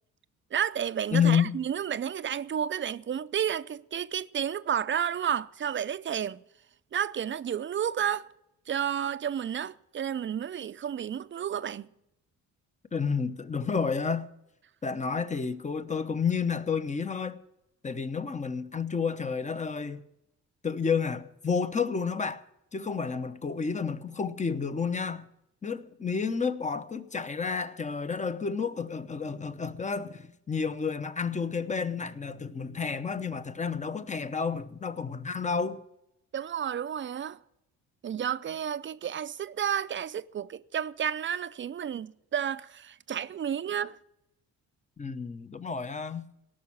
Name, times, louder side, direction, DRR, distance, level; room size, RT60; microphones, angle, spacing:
voice 1, 0.5-6.4 6.9-8.3 8.7-11.9 36.3-37.4 38.0-44.0, right 9 dB, 40° right, 0.6 m, -31 dB
voice 2, 1.1-1.5 12.9-14.3 14.8-17.4 17.8-20.0 20.6-22.4 22.7-25.3 25.6-35.8 45.0-46.3, left 6 dB, 25° left, 1.0 m, -30 dB
18.0 x 6.2 x 8.7 m
cardioid pair, 90°, 30 cm